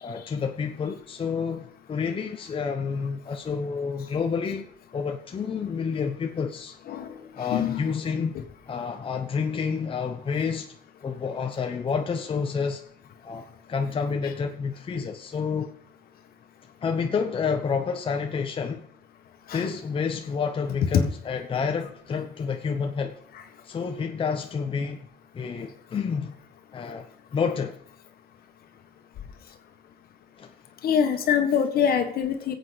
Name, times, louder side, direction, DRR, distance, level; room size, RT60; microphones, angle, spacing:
voice 1, 0.0-4.7 4.9-6.8 7.3-8.4 8.7-10.8 11.0-12.8 13.2-15.7 16.8-18.9 19.5-23.1 23.6-25.0 25.3-26.4 26.7-27.8 30.4-30.5, left 5 dB, 30° left, 0.9 m, -29 dB
voice 2, 7.5-7.8 19.5-19.6 30.8-32.5, left 8 dB, 65° left, 1.6 m, -24 dB
21.5 x 8.1 x 4.1 m
cardioid pair, 110°, 17 cm